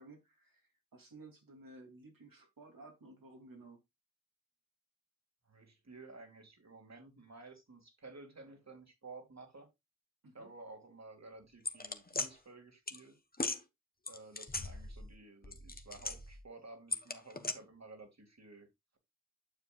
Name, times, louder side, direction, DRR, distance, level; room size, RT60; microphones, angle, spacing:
voice 1, 0.0-3.8 10.2-10.5, right 2 dB, 85° right, 3.1 m, -55 dB
voice 2, 5.4-9.7 10.3-13.2 14.1-19.0, right 3 dB, 55° right, 2.6 m, -53 dB
sound 1, 11.6-12.3 12.9-13.0 13.3-13.6 14.1-15.2 15.4-16.4 16.9-17.5, left 3 dB, 25° left, 1.2 m, -38 dB
9.9 x 7.0 x 2.5 m
wide cardioid pair, 65°, 33 cm